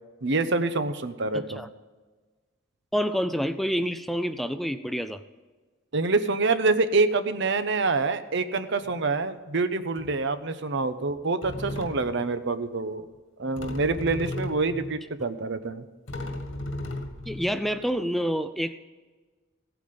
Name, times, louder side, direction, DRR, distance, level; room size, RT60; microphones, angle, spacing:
voice 1, 0.2-1.6 5.9-13.0 13.4-15.9, right 3 dB, 65° right, 11 dB, 0.9 m, -26 dB
voice 2, 1.3-1.7 2.9-5.2 14.7-14.8 17.3-18.8, equal, ahead, 10 dB, 0.4 m, -28 dB
sound 1, 8.8-9.0 10.0-10.4 11.1-11.2 11.4-12.3 13.6-15.0 15.6-15.7 16.1-17.9, left 1 dB, 80° left, 1.9 m, -36 dB
16.5 x 9.0 x 5.2 m, 1.3 s
head